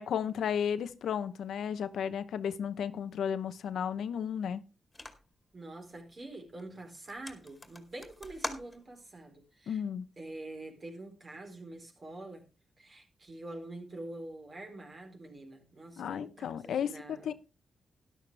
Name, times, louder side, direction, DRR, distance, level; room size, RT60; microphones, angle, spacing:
voice 1, 0.0-4.6 9.7-10.1 16.0-17.3, left 8 dB, 85° left, 0.8 m, -34 dB
sound 1, 4.9-5.4 6.0-6.3 6.6-6.7 6.9-9.2, left 2 dB, 20° left, 2.3 m, -43 dB
voice 2, 5.5-9.8 10.2-12.4 12.8-17.3, right 2 dB, 40° right, 4.2 m, -46 dB
13.0 x 11.5 x 3.4 m
cardioid pair, 85°, 0 cm